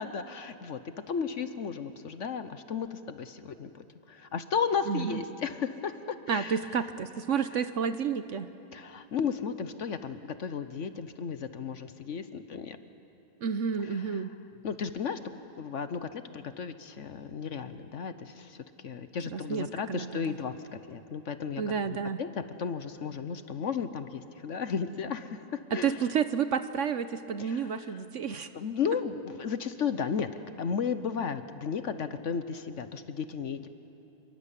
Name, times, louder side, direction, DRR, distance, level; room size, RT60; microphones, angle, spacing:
voice 1, 0.0-6.8 7.5-7.6 8.7-12.8 13.8-14.3 14.6-15.2 15.6-18.6 18.8-26.0 27.4-28.0 28.5-30.3 30.6-33.7, left 6 dB, 55° left, 11 dB, 1.1 m, -34 dB
voice 2, 4.9-5.2 6.3-8.5 13.4-14.3 19.3-20.4 21.6-22.2 25.7-28.5, right 7 dB, 60° right, 11 dB, 1.0 m, -30 dB
28.0 x 22.0 x 8.3 m, 2.9 s
omnidirectional pair, 1.7 m